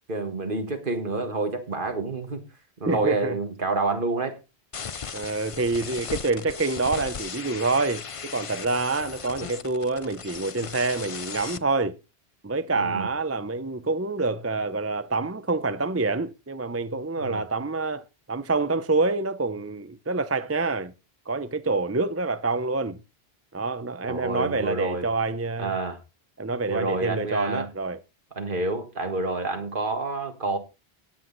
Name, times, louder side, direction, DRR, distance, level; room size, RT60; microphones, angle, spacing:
voice 1, 0.1-2.4 2.8-4.4 12.8-13.1 17.2-17.5 24.1-25.1 25.6-26.0 26.7-27.7 28.3-30.6, right 3 dB, 55° right, 1.9 m, -28 dB
voice 2, 2.9-3.4 5.1-12.0 12.4-20.9 21.3-23.0 23.5-25.7 26.4-28.0, right 3 dB, 15° right, 0.6 m, -27 dB
sound 1, 4.7-11.6, left 6 dB, 40° left, 0.6 m, -37 dB
17.0 x 7.9 x 4.0 m
omnidirectional pair, 1.0 m